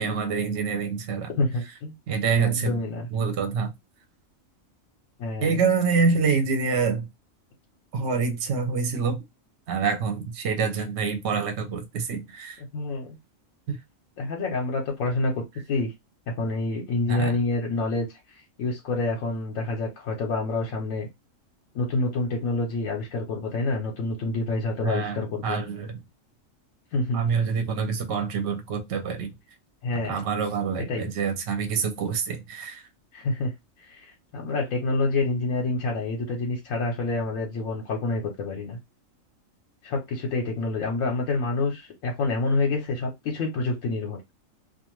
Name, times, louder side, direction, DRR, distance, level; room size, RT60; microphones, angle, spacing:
voice 1, 0.0-1.3 2.1-2.8 3.1-3.7 5.4-7.1 7.9-9.2 9.7-12.6 13.7-13.8 17.1-17.4 24.8-26.0 27.1-29.3 30.1-32.8, right 5 dB, 60° right, 0.9 m, -26 dB
voice 2, 1.4-1.9 2.4-3.1 5.2-5.6 12.7-13.2 14.2-15.9 16.4-18.1 18.6-21.1 21.7-25.6 26.9-27.2 29.8-30.2 30.9-31.1 33.1-33.5 33.8-38.8 39.8-44.2, left 3 dB, 80° left, 1.1 m, -27 dB
2.5 x 2.4 x 3.0 m
omnidirectional pair, 1.4 m